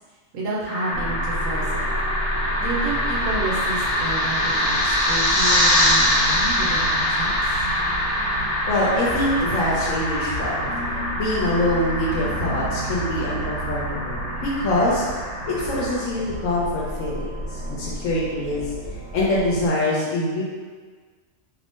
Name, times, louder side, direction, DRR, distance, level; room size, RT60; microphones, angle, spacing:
voice 1, 0.3-1.9 2.6-7.6, right 2 dB, 85° right, -4 dB, 1.2 m, -30 dB
sound 1, 0.7-16.0, left 1 dB, 55° left, 1.2 m, -24 dB
sound 2, 0.9-19.7, right 2 dB, 60° right, 1.1 m, -32 dB
voice 2, 8.6-15.0 15.5-18.7 19.1-20.4, left 1 dB, 85° left, -5 dB, 1.1 m, -24 dB
2.9 x 2.5 x 3.5 m, 1.5 s
omnidirectional pair, 1.3 m